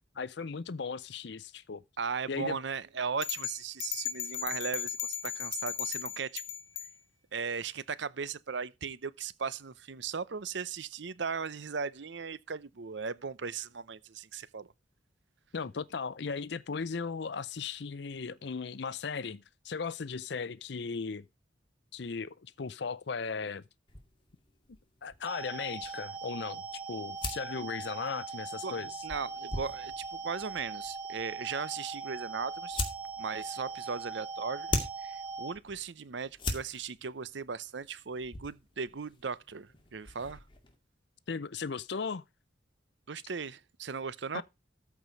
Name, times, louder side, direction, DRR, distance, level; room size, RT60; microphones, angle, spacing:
voice 1, 0.1-1.8 2.3-2.6 15.5-21.3 21.9-23.6 25.0-26.6 26.9-29.0 41.3-42.2 44.3-44.4, left 5 dB, 65° left, 0.5 m, -37 dB
voice 2, 2.0-6.4 7.3-14.7 28.6-28.7 29.0-32.8 33.2-40.4 43.1-44.4, right 5 dB, 70° right, 0.7 m, -37 dB
sound 1, 3.2-6.9, left 9 dB, 85° left, 1.5 m, -36 dB
sound 2, 23.9-40.7, left 2 dB, 25° left, 2.2 m, -42 dB
sound 3, 25.3-35.5, right 4 dB, 10° right, 0.9 m, -41 dB
13.5 x 4.8 x 5.2 m
head